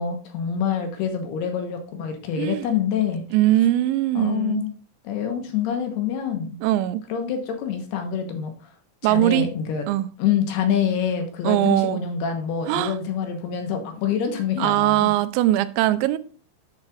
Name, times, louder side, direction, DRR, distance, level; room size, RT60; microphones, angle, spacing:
voice 1, 0.0-3.2 4.1-4.8 5.0-6.6 7.1-8.5 9.0-9.9 10.2-15.1, left 8 dB, 75° left, 2.8 m, -26 dB
voice 2, 3.3-4.7 6.6-7.0 9.0-9.5 9.9-10.1 11.4-12.0 12.7-13.0 14.6-16.2, right 14 dB, 85° right, 2.8 m, -21 dB
10.5 x 7.1 x 2.4 m
omnidirectional pair, 5.3 m